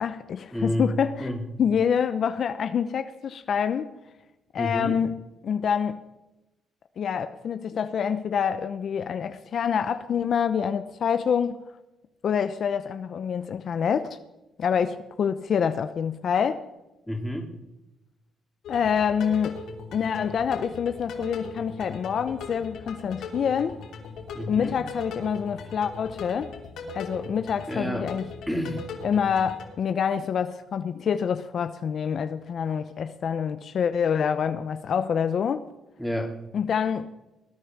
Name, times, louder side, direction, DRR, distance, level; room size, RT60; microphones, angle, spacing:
voice 1, 0.0-1.3 1.6-3.9 4.5-6.0 7.0-11.6 12.2-14.2 14.6-16.6 18.7-19.6 19.9-23.8 24.5-26.5 26.9-28.3 29.0-35.7 36.5-37.1, left 7 dB, 60° left, 0.7 m, -26 dB
voice 2, 0.5-0.9 1.2-1.4 4.6-5.0 17.1-17.5 24.3-24.8 27.7-28.1 28.5-28.8 36.0-36.3, equal, ahead, 2.8 m, -29 dB
sound 1, 18.6-29.6, left 4 dB, 80° left, 3.1 m, -39 dB
20.5 x 9.7 x 6.0 m
cardioid pair, 90°, 0 cm